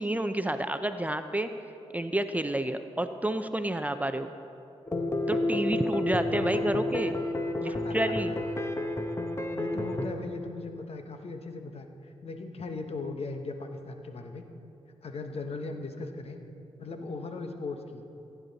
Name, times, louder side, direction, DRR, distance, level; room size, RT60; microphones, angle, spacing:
voice 1, 0.0-1.5 1.9-4.3 5.3-7.2 7.6-8.3, right 1 dB, 15° right, 9 dB, 0.5 m, -30 dB
sound 1, 4.9-10.1, left 2 dB, 25° left, 0.9 m, -30 dB
voice 2, 6.4-6.8 7.6-8.0 8.3-8.7 9.1-9.2 9.5-14.4 15.0-16.4 16.8-18.0, left 3 dB, 60° left, 6 dB, 1.0 m, -38 dB
15.5 x 9.4 x 4.1 m, 2.8 s
cardioid pair, 65°, 11 cm